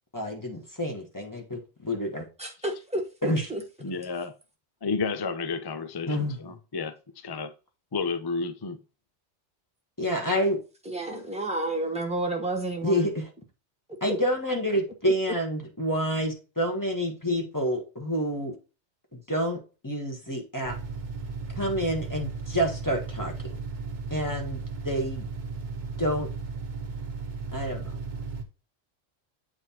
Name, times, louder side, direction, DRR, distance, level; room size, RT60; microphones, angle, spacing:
voice 1, 0.1-2.2 3.2-3.5 6.1-6.4 10.0-10.6 12.8-13.3 14.0-18.5 19.3-20.8 21.6-23.3 24.1-25.3 26.0-26.3 27.5-27.9, equal, 15° left, 1.5 m, -28 dB
voice 2, 2.4-3.6 10.8-13.1, right 2 dB, 5° right, 1.2 m, -31 dB
voice 3, 3.8-4.3 4.8-6.9 7.2-7.5 7.9-8.8, left 4 dB, 35° left, 0.3 m, -31 dB
sound 1, 20.6-28.4, right 4 dB, 45° right, 1.0 m, -35 dB
7.9 x 3.6 x 4.3 m
omnidirectional pair, 1.2 m